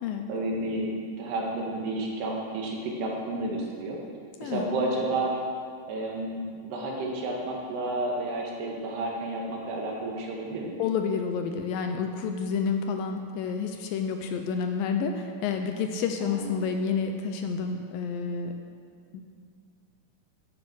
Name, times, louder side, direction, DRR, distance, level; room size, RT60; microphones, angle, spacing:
voice 1, 0.3-4.0 4.4-5.3 5.9-10.8 16.2-16.7, right 2 dB, 90° right, -2 dB, 4.0 m, -31 dB
voice 2, 10.8-18.5 19.1-19.2, left 6 dB, 75° left, 5 dB, 2.2 m, -29 dB
14.5 x 8.5 x 6.3 m, 2.2 s
omnidirectional pair, 4.5 m